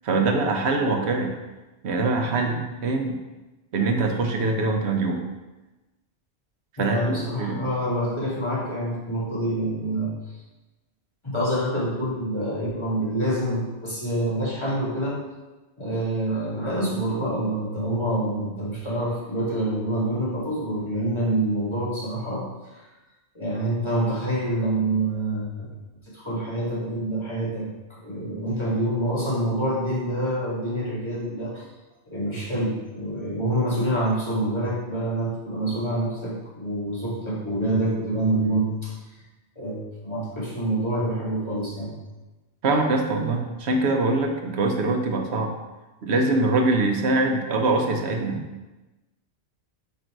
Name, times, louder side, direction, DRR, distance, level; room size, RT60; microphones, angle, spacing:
voice 1, 0.0-1.3 1.8-3.2 3.7-5.2 6.8-7.7 42.6-45.5 46.0-48.4, right 3 dB, 75° right, 3 dB, 1.1 m, -23 dB
voice 2, 6.8-10.4 11.2-15.2 15.8-22.5 22.7-22.9 23.3-25.7 26.1-31.7 32.0-38.9 39.5-41.9, right 1 dB, 25° left, -7 dB, 1.8 m, -26 dB
5.4 x 3.9 x 4.6 m, 1.1 s
omnidirectional pair, 1.1 m